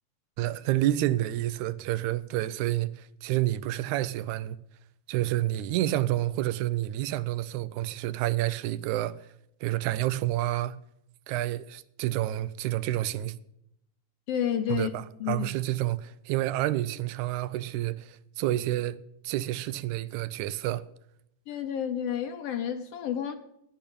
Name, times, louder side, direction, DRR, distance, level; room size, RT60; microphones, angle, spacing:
voice 1, 0.4-4.6 5.1-9.2 9.6-10.8 11.3-13.4 14.7-19.0 19.2-20.8, right 14 dB, 85° right, 2.0 m, -29 dB
voice 2, 14.3-14.9 15.2-15.5 21.5-23.4, left 9 dB, 70° left, 1.6 m, -30 dB
10.0 x 8.9 x 8.7 m
omnidirectional pair, 3.3 m